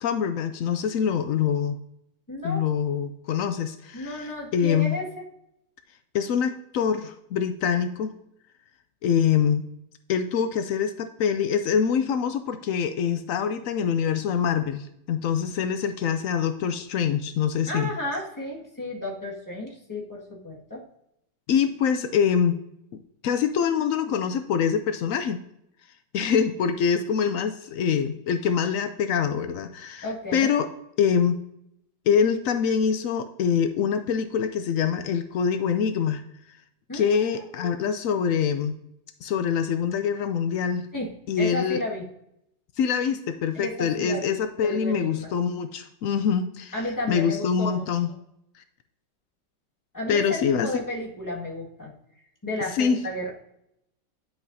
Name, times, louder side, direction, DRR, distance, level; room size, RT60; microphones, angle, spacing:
voice 1, 0.0-1.8 2.4-5.0 6.1-8.1 9.0-9.6 10.1-17.9 21.5-22.6 23.2-25.4 26.1-30.1 30.3-30.7 31.0-31.4 32.1-36.2 36.9-38.8 39.2-40.9 41.3-41.8 42.8-46.7 47.1-48.1 50.1-50.7 52.7-53.0, left 7 dB, 90° left, 9 dB, 0.7 m, -24 dB
voice 2, 2.3-2.6 3.9-5.1 17.7-20.8 30.0-30.5 36.9-37.7 40.9-42.0 43.5-44.2 44.6-45.3 46.7-47.8 49.9-51.9 52.4-53.3, left 1 dB, 10° left, -3 dB, 1.6 m, -33 dB
9.8 x 5.7 x 2.6 m, 0.77 s
omnidirectional pair, 2.0 m